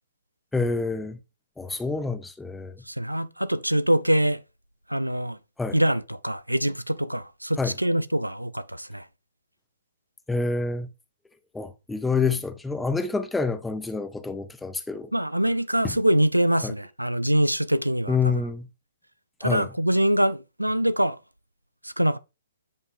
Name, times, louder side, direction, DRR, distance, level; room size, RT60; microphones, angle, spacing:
voice 1, 0.5-1.2 1.6-2.8 5.6-5.8 7.6-7.8 10.3-10.9 11.5-15.1 15.8-16.0 16.6-16.7 18.1-18.7 19.4-19.7, left 4 dB, 5° left, 0.8 m, -27 dB
voice 2, 2.9-4.4 4.9-5.4 5.7-9.0 15.1-18.2 19.4-21.2 21.8-22.2, right 1 dB, 90° right, 0.6 m, -24 dB
9.6 x 5.3 x 3.7 m
figure-of-eight pair, 125°, 0 cm